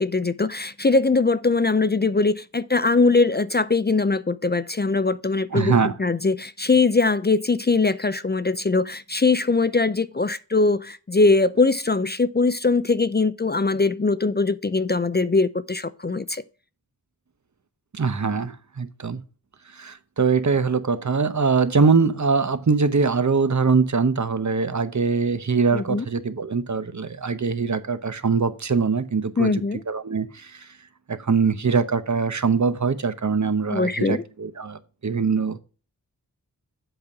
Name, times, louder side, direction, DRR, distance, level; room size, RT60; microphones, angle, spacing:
voice 1, 0.0-5.7 6.0-16.4 25.7-26.0 29.4-29.8 33.7-34.2, left 3 dB, 25° left, 0.5 m, -21 dB
voice 2, 5.5-6.0 17.9-19.2 19.7-29.6 29.9-30.7 31.1-35.6, right 5 dB, 50° right, 0.9 m, -22 dB
7.9 x 5.4 x 4.7 m
wide cardioid pair, 70°, 37 cm